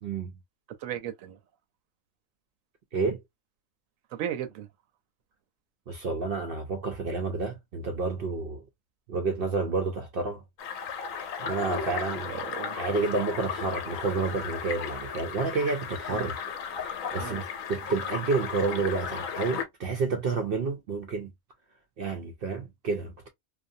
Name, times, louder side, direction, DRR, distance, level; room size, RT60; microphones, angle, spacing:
voice 1, 0.0-0.3 2.9-3.2 5.9-8.6 9.1-10.4 11.4-12.4 12.7-16.4 16.7-21.3 22.0-23.3, right 4 dB, 65° right, 0.6 m, -30 dB
voice 2, 0.8-1.4 4.1-4.7 12.3-12.8 16.1-16.2 17.2-17.4, right 10 dB, 80° right, 1.0 m, -35 dB
sound 1, 10.6-19.7, left 7 dB, 75° left, 1.0 m, -35 dB
2.6 x 2.1 x 2.5 m
omnidirectional pair, 1.4 m